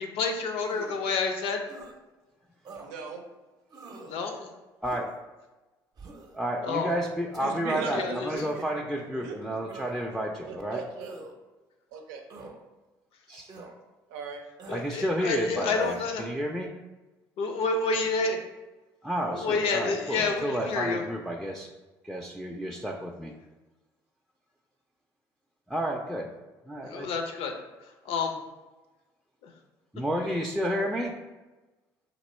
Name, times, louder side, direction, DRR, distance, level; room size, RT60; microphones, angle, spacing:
voice 1, 0.0-1.7 4.1-4.5 6.6-6.9 7.9-8.3 14.7-16.2 17.4-18.4 19.3-21.0 26.8-27.5 28.0-28.4, left 4 dB, 65° left, 4 dB, 0.6 m, -29 dB
sound 1, 0.6-1.1 1.7-1.9 2.6-2.9 3.7-4.2 4.8-5.2 6.0-6.4 7.3-7.5 8.4-8.8 9.6-10.2 11.0-11.3 12.3-12.6 13.5-13.7 14.6-14.9 15.8-16.1, right 3 dB, 40° right, 0.7 m, -45 dB
voice 2, 2.7-3.2 7.4-8.6 9.2-9.4 10.5-11.2 11.9-12.2 14.1-14.4, right 5 dB, 80° right, 4 dB, 0.5 m, -38 dB
voice 3, 6.3-10.8 13.3-13.5 14.7-16.7 19.0-21.7 22.0-23.3 25.7-26.3 26.7-27.1 29.9-31.1, equal, ahead, -1 dB, 0.4 m, -31 dB
3.0 x 2.9 x 4.2 m, 1.1 s
hypercardioid pair, 60°, 10 cm